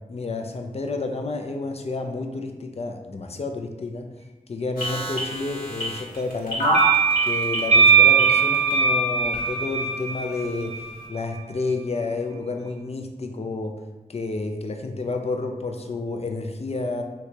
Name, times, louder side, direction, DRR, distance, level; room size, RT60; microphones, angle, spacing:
voice 1, 0.1-4.1 4.5-6.8 7.2-13.7 14.1-17.0, left 3 dB, 45° left, 4 dB, 0.4 m, -30 dB
sound 1, 4.8-8.7 9.3-9.4, right 1 dB, 75° left, 1.1 m, -26 dB
sound 2, 6.7-11.2, right 5 dB, 50° right, 0.5 m, -20 dB
2.9 x 2.3 x 3.7 m, 1.1 s
cardioid pair, 45°, 15 cm